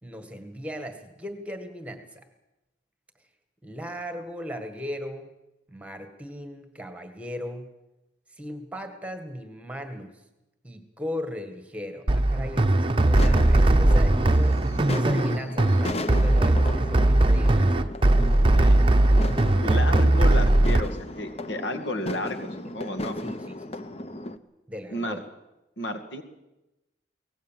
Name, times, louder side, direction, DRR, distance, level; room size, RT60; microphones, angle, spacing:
voice 1, 0.0-2.2 3.6-5.3 5.7-7.7 8.4-10.2 10.6-17.7 22.8-22.9 23.2-23.8 24.7-25.2, equal, 5° right, 7 dB, 1.7 m, -37 dB
sound 1, 12.1-20.8, right 1 dB, 25° right, 0.7 m, -19 dB
sound 2, 13.0-24.4, left 1 dB, 35° left, 0.8 m, -36 dB
voice 2, 18.3-18.8 19.5-23.2 24.9-25.2 25.8-26.2, left 1 dB, 70° left, 7 dB, 2.3 m, -32 dB
23.5 x 18.5 x 7.5 m, 0.97 s
head